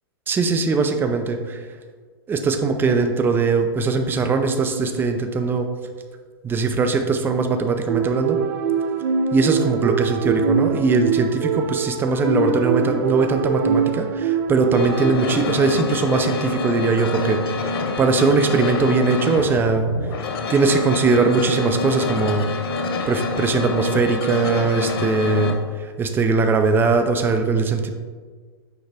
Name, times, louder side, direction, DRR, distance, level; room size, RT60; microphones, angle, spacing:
voice 1, 0.3-1.6 2.3-5.7 6.4-8.4 9.3-19.9 20.2-22.5 23.1-27.9, right 4 dB, 15° right, 6 dB, 0.5 m, -20 dB
sound 1, 7.9-15.1, right 5 dB, 65° right, 0.7 m, -23 dB
sound 2, 14.7-25.5, left 3 dB, 70° left, 0.7 m, -27 dB
6.6 x 4.7 x 3.4 m, 1.5 s
hypercardioid pair, 125°, 13 cm